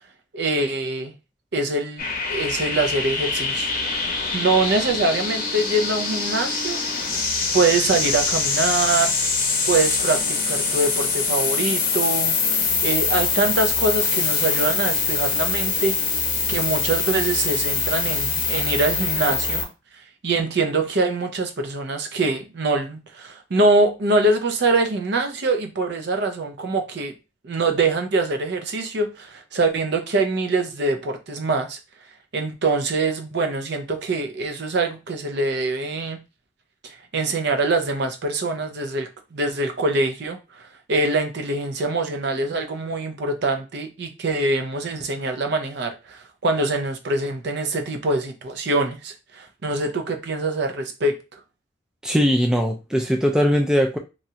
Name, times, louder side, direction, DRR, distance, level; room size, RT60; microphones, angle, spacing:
voice 1, 0.3-1.1 1.5-6.8 7.5-9.1 9.7-12.4 12.8-16.0 16.5-19.7 20.2-27.1 27.4-31.8 32.3-36.2 36.8-51.4, right 2 dB, 60° right, 0.6 m, -24 dB
sound 1, 2.0-19.7, left 4 dB, 45° left, 0.7 m, -24 dB
voice 2, 52.0-54.0, equal, 5° right, 0.3 m, -20 dB
3.0 x 2.4 x 2.7 m
head